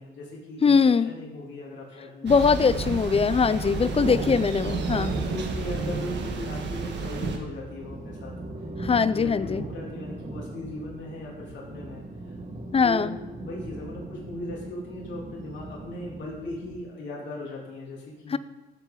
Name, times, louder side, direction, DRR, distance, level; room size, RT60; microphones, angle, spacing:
voice 1, 0.0-2.9 3.6-8.3 8.8-12.0 12.8-18.4, left 1 dB, 65° left, -5 dB, 3.4 m, -38 dB
voice 2, 0.6-1.1 2.2-5.1 8.8-9.6 12.7-13.1 18.3-18.4, left 5 dB, 30° left, 15 dB, 0.5 m, -21 dB
Thunder, 2.3-7.4, right 4 dB, 65° right, 1.6 m, -30 dB
sound 1, 7.2-16.8, right 1 dB, 35° right, 1.6 m, -40 dB
15.0 x 7.1 x 3.9 m, 1.1 s
cardioid pair, 90°, 20 cm